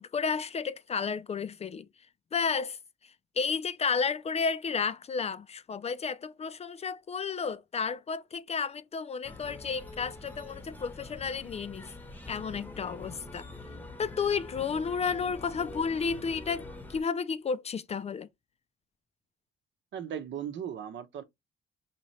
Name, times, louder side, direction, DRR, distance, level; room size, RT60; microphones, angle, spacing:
voice 1, 0.0-1.9 2.3-2.8 3.4-11.9 12.3-13.5 14.0-16.6 16.9-18.3, left 5 dB, 30° left, 0.4 m, -32 dB
sound 1, 9.2-17.0, left 2 dB, 10° left, 0.8 m, -45 dB
voice 2, 19.9-21.2, right 9 dB, 70° right, 0.9 m, -37 dB
4.1 x 2.8 x 3.1 m
cardioid pair, 90°, 20 cm